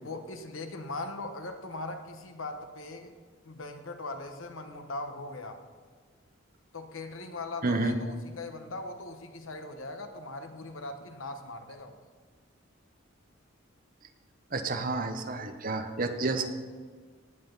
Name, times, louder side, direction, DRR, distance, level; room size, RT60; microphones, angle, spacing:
voice 1, 0.0-3.1 3.4-5.6 6.7-12.0 16.4-16.5, left 2 dB, 85° left, 6 dB, 1.3 m, -40 dB
voice 2, 7.6-8.0 14.5-16.5, right 3 dB, 45° right, 7 dB, 1.0 m, -30 dB
17.5 x 9.4 x 4.0 m, 1.5 s
head